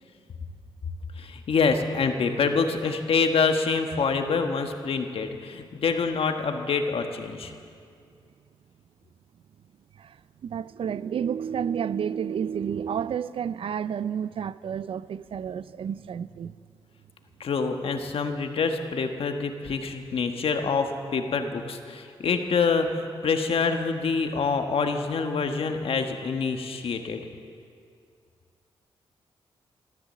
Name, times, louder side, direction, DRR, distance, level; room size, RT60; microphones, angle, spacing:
voice 1, 1.2-7.5 17.4-27.2, left 5 dB, 70° left, 1.3 m, -26 dB
voice 2, 10.4-16.5, right 8 dB, 65° right, 0.4 m, -30 dB
13.5 x 13.5 x 7.4 m
cardioid pair, 70°, 10 cm